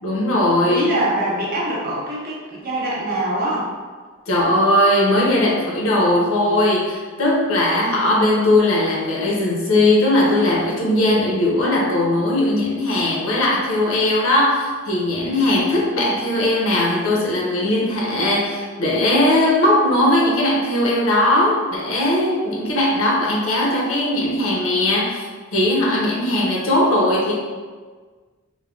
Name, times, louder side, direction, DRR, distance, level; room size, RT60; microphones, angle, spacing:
voice 1, 0.0-0.9 4.3-27.4, left 1 dB, 80° left, -4 dB, 0.7 m, -19 dB
voice 2, 0.7-3.7, right 1 dB, 45° right, -4 dB, 0.7 m, -23 dB
3.2 x 2.2 x 2.3 m, 1.5 s
head